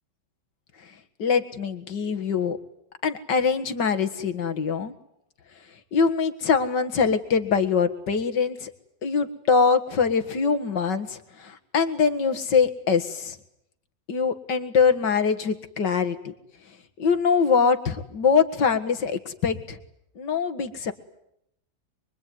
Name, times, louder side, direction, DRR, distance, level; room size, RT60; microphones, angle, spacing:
voice 1, 1.2-2.6 3.0-4.9 5.9-8.7 9.0-13.4 14.1-16.3 17.0-19.8 20.2-20.9, left 5 dB, 65° left, 8 dB, 2.4 m, -23 dB
24.5 x 24.0 x 9.4 m, 0.77 s
omnidirectional pair, 2.0 m